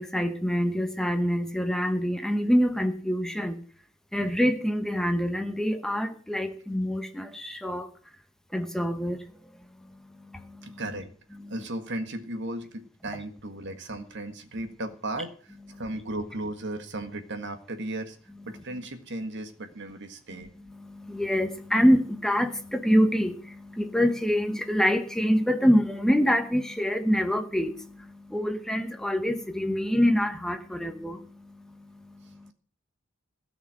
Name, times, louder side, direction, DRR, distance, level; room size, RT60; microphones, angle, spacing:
voice 1, 0.0-3.6 4.1-7.9 8.5-10.8 11.4-11.5 20.3-32.5, equal, 5° left, 1.0 m, -26 dB
voice 2, 10.6-11.1 11.5-18.2 18.4-20.5, right 1 dB, 60° right, 1.7 m, -36 dB
17.0 x 6.0 x 7.5 m
head